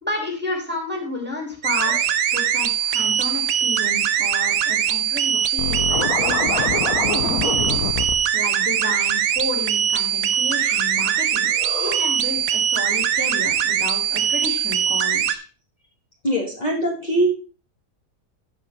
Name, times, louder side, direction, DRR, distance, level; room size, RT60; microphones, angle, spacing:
voice 1, 0.0-11.5 11.8-15.4, left 2 dB, 5° right, 0 dB, 2.4 m, -31 dB
sound 1, 1.6-15.4, right 9 dB, 65° right, 1.1 m, -21 dB
Scratching (performance technique), 5.6-8.1, left 6 dB, 70° left, 1.4 m, -25 dB
voice 2, 11.5-12.1 16.2-17.3, equal, 30° left, -4 dB, 1.8 m, -24 dB
15.0 x 5.3 x 3.4 m, 0.36 s
omnidirectional pair, 1.6 m